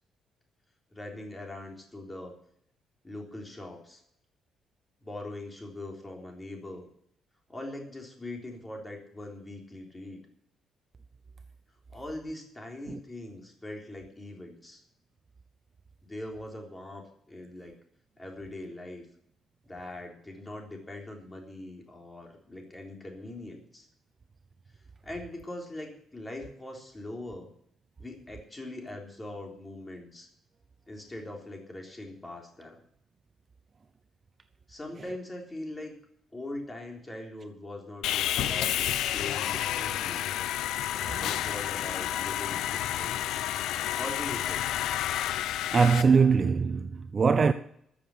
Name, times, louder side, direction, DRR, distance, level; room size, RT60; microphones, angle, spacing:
voice 1, 0.9-2.3 3.0-4.0 5.0-6.9 7.5-10.2 11.9-14.8 16.0-17.8 18.2-19.1 19.6-23.9 25.0-27.5 28.0-30.3 30.9-32.8 34.7-36.0 36.3-40.2 41.2-42.7 43.0-43.4 44.0-44.7, left 1 dB, 15° left, 3.6 m, -41 dB
Sawing, 38.0-46.0, left 12 dB, 90° left, 0.6 m, -30 dB
voice 2, 45.7-47.5, right 5 dB, 30° right, 0.6 m, -22 dB
14.0 x 7.0 x 10.0 m
cardioid pair, 140°, 0 cm